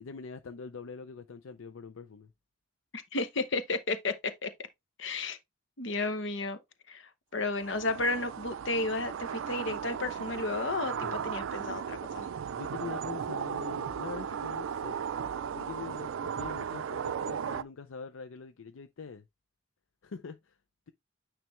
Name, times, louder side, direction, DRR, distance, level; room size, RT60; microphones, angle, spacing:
voice 1, 0.0-2.3 10.8-11.3 12.5-15.0 15.5-19.2 20.0-20.6, left 5 dB, 85° left, 0.5 m, -43 dB
voice 2, 2.9-4.5 5.0-5.4 5.8-6.6 6.9-12.3, left 2 dB, 65° left, 0.9 m, -33 dB
sound 1, 7.5-17.6, right 7 dB, 80° right, 0.4 m, -36 dB
9.1 x 3.3 x 3.1 m
head